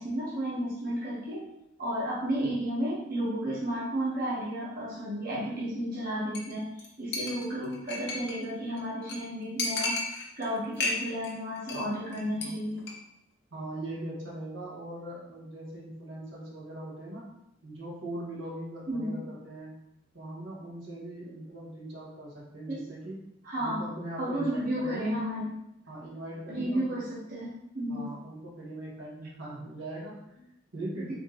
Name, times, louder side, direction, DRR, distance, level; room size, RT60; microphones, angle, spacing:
voice 1, 0.0-1.4 1.8-10.0 10.4-12.8 18.9-19.2 22.7-22.8 23.4-23.8 24.2-25.5 26.5-28.1, equal, 50° right, -7 dB, 1.1 m, -32 dB
Chink clink, 6.3-6.5 6.8-6.9 7.1-8.5 8.8-8.9 9.1-9.2 9.6-10.5 10.8-11.3 11.6-11.9 12.1-12.5 12.8-12.9, left 2 dB, 60° left, 0.8 m, -32 dB
voice 2, 13.5-17.3 17.6-19.7 20.1-23.2 23.6-25.1 25.9-26.9 27.9-31.1, right 1 dB, 85° right, -5 dB, 1.5 m, -40 dB
4.3 x 3.7 x 3.0 m, 0.83 s
head